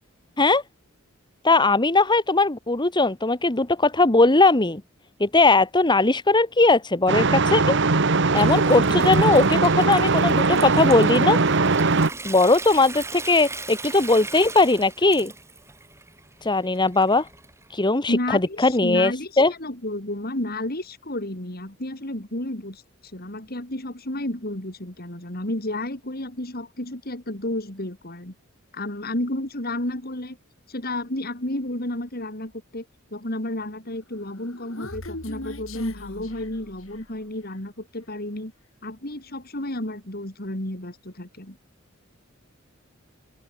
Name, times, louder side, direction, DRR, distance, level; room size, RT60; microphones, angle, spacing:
voice 1, 1.4-4.8 5.2-7.8 8.3-11.4 12.2-15.3 16.4-17.3 17.7-19.1 19.4-19.5, left 3 dB, 25° left, 1.5 m, -19 dB
sound 1, 7.1-12.1, right 3 dB, 65° right, 1.3 m, -20 dB
Water tap faucet / Sink (filling or washing) / Trickle dribble, 8.1-17.8, right 3 dB, 15° right, 3.6 m, -40 dB
voice 2, 18.1-22.8 23.1-28.3 28.7-30.4 30.7-32.8 33.1-38.5 38.8-41.6, left 1 dB, 50° left, 5.0 m, -31 dB
Human voice, 34.2-37.2, left 1 dB, 85° left, 5.3 m, -39 dB
open air
head